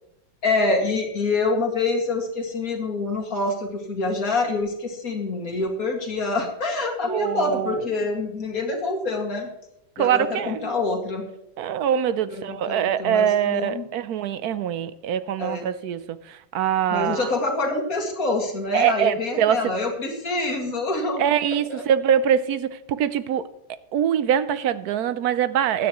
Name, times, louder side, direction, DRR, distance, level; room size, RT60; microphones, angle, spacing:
voice 1, 0.4-9.5 10.0-11.2 12.3-13.8 15.4-15.6 16.9-21.2 21.7-21.8, left 3 dB, 55° left, 2.5 m, -26 dB
voice 2, 7.0-7.9 10.0-10.7 11.6-17.3 18.7-19.7 21.2-23.5 23.9-25.9, right 9 dB, 70° right, 1.1 m, -23 dB
16.0 x 11.5 x 3.0 m
omnidirectional pair, 1.9 m